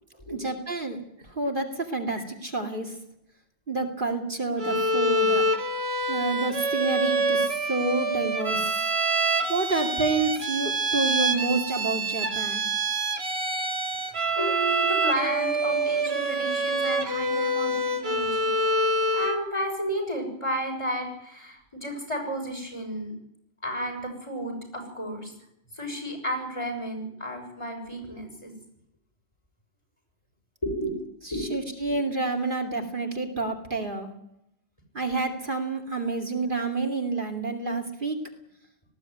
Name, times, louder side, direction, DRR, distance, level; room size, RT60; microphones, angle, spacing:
voice 1, 0.3-1.0 1.3-3.0 3.7-5.5 6.1-8.9 9.5-12.7 31.2-34.1 34.9-38.2, right 3 dB, 50° right, 3 dB, 2.6 m, -29 dB
Bowed string instrument, 4.6-19.5, right 2 dB, 70° right, 2.3 m, -26 dB
voice 2, 14.3-18.5 19.1-23.1 23.6-25.3 25.7-28.5 30.6-30.9 31.3-31.5 31.8-31.9, equal, 30° left, 3 dB, 6.6 m, -32 dB
19.5 x 16.0 x 9.2 m, 0.79 s
omnidirectional pair, 1.1 m